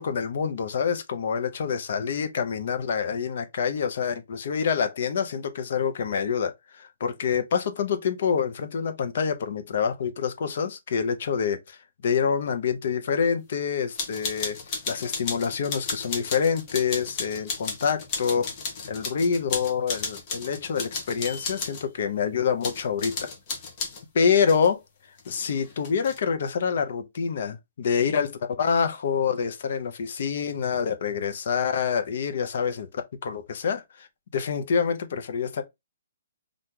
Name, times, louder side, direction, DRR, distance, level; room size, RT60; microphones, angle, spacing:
voice 1, 0.0-11.8 12.0-14.6 14.9-18.5 18.9-23.3 24.1-24.8 25.3-32.9 33.2-34.1 34.3-35.6, left 6 dB, 50° left, 0.7 m, -26 dB
sound 1, 13.9-21.8 22.6-24.0 24.5-24.7 25.2-26.2, left 4 dB, 25° left, 0.9 m, -34 dB
2.9 x 2.5 x 3.5 m
hypercardioid pair, 170°, 0 cm